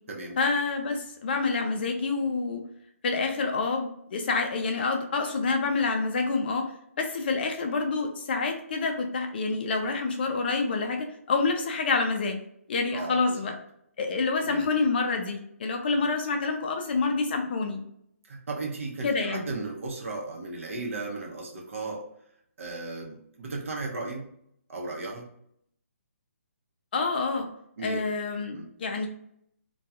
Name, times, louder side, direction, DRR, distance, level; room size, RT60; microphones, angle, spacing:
voice 1, 0.4-2.6 3.0-6.7 7.0-12.4 12.7-13.5 14.0-17.8 19.0-19.5 26.9-27.5 27.8-29.1, left 4 dB, 40° left, 4 dB, 0.4 m, -27 dB
voice 2, 12.9-13.4 14.4-14.6 18.2-22.1 22.6-24.3 24.7-25.3 27.8-28.1 28.5-28.7, right 3 dB, 60° right, -1 dB, 0.7 m, -35 dB
2.3 x 2.3 x 2.7 m, 0.70 s
hypercardioid pair, 160°, 8 cm